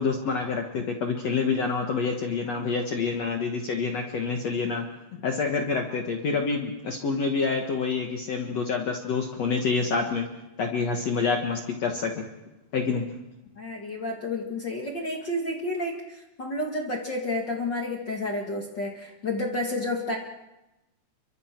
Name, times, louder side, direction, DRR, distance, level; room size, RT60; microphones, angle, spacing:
voice 1, 0.0-4.9 5.2-10.3 10.6-12.2 12.7-13.1, left 4 dB, 90° left, 2 dB, 1.4 m, -27 dB
voice 2, 13.5-20.2, left 1 dB, 55° left, 0 dB, 1.2 m, -30 dB
29.0 x 24.5 x 4.5 m, 0.98 s
omnidirectional pair, 5.5 m